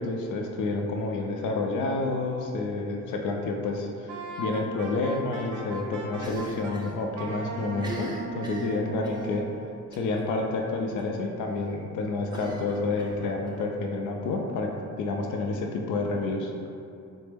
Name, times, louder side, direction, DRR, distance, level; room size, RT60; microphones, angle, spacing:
voice 1, 0.0-4.1 4.4-8.1 8.3-9.4 9.9-14.7 15.0-16.5, left 3 dB, 80° left, 1 dB, 0.5 m, -29 dB
Wind instrument woodwind instrument, 4.1-6.7 7.1-9.5, right 3 dB, 90° right, 0.5 m, -38 dB
Cough, 6.2-7.0 7.2-7.3 7.7-9.3 9.9-10.2 10.5-10.6 11.0-11.1 12.3-13.6, right 1 dB, 15° right, 0.5 m, -40 dB
4.1 x 2.0 x 3.4 m, 2.5 s
cardioid pair, 90°, 30 cm